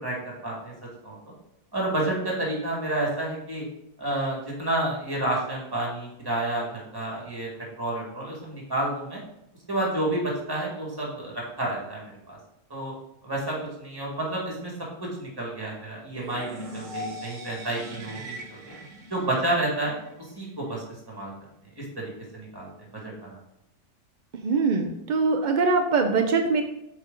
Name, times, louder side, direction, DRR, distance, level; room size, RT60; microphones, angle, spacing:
voice 1, 0.0-0.7 1.0-1.2 1.7-3.6 4.0-7.5 7.8-9.2 9.7-12.4 12.7-12.9 13.2-14.7 15.0-18.7 19.1-21.3 21.8-23.4, right 1 dB, 15° right, -3 dB, 2.0 m, -30 dB
sound 1, 16.1-20.1, equal, 60° right, 1.3 m, -40 dB
voice 2, 24.4-26.6, right 4 dB, 75° right, 5 dB, 0.4 m, -22 dB
8.0 x 4.4 x 3.8 m, 0.84 s
omnidirectional pair, 1.6 m